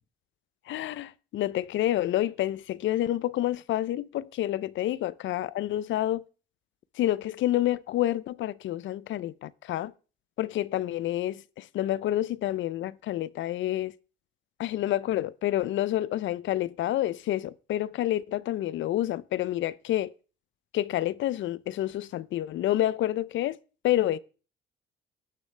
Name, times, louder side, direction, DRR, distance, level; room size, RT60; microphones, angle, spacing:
voice 1, 0.7-6.2 7.0-9.9 10.4-13.9 14.6-20.1 20.7-23.6 23.8-24.2, left 13 dB, 75° left, 0.5 m, -28 dB
18.0 x 6.3 x 3.3 m
cardioid pair, 90°, 20 cm